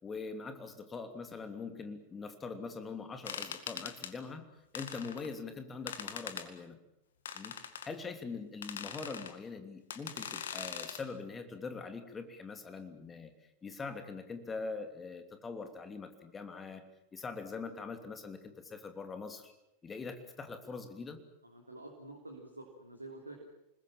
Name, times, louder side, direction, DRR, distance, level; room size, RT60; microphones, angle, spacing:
voice 1, 0.0-4.5 4.7-6.8 7.3-7.5 7.8-13.3 13.6-16.8 17.1-19.5 19.8-21.2, left 4 dB, 20° left, 8 dB, 3.0 m, -43 dB
sound 1, 3.2-4.1 4.7-5.3 5.9-6.5 7.2-7.9 8.6-9.3 9.9-11.0, left 8 dB, 65° left, 2.1 m, -42 dB
voice 2, 21.4-23.4, right 2 dB, 85° right, 2 dB, 3.3 m, -48 dB
28.0 x 20.5 x 7.6 m, 0.86 s
figure-of-eight pair, 90°, 0 cm